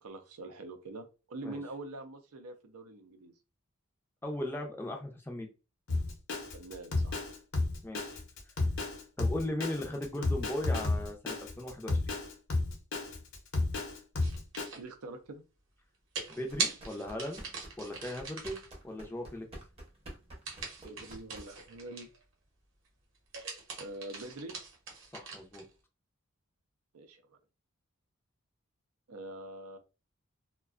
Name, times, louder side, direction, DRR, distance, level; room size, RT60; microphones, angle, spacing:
voice 1, 0.0-3.3 6.5-7.3 14.8-15.4 20.8-22.1 23.8-24.6 26.9-27.4 29.1-29.8, right 2 dB, 90° right, 7 dB, 0.5 m, -44 dB
voice 2, 4.2-5.5 7.8-8.2 9.2-12.1 16.3-17.4 17.8-18.6 18.8-19.5 25.1-25.6, left 1 dB, 10° left, 2 dB, 0.4 m, -38 dB
Drum kit, 5.9-14.7, left 2 dB, 65° left, 0.7 m, -32 dB
sound 1, 14.2-14.9 16.1-18.7 20.4-22.2 23.1-25.7, right 4 dB, 60° right, 0.8 m, -40 dB
sound 2, 16.5-21.8, right 1 dB, 25° right, 0.6 m, -50 dB
2.4 x 2.1 x 2.3 m, 0.30 s
head